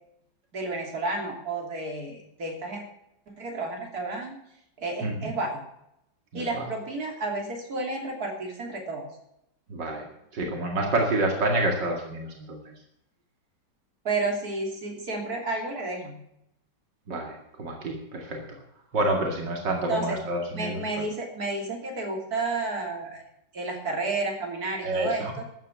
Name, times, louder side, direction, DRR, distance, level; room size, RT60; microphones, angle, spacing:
voice 1, 0.5-2.8 3.3-4.4 4.8-5.6 6.3-9.1 14.1-16.2 19.9-20.2 20.5-23.2 23.5-25.2, right 3 dB, 55° right, 1 dB, 3.5 m, -31 dB
voice 2, 6.3-6.6 9.7-12.6 17.1-18.6 18.9-20.8 24.8-25.3, right 2 dB, 85° right, 1 dB, 2.8 m, -28 dB
13.5 x 9.1 x 7.2 m, 0.79 s
omnidirectional pair, 1.9 m